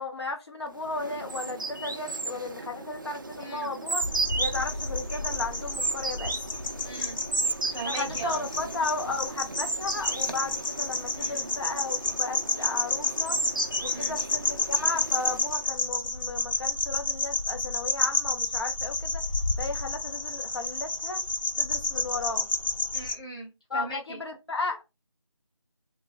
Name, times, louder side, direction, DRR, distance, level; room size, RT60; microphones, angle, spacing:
voice 1, 0.0-4.0 4.4-6.3 7.8-13.4 13.8-19.2 19.6-21.2 21.6-22.5 23.7-24.8, left 3 dB, 55° left, 0.9 m, -34 dB
sound 1, 0.8-15.7, right 3 dB, 40° right, 0.4 m, -35 dB
voice 2, 3.4-3.7 6.8-7.2 7.7-8.5 11.1-11.5 13.9-14.2 22.9-24.2, right 2 dB, 10° left, 0.6 m, -39 dB
sound 2, 4.0-23.1, left 2 dB, 85° left, 0.9 m, -30 dB
3.2 x 2.1 x 3.3 m
figure-of-eight pair, 170°, 16 cm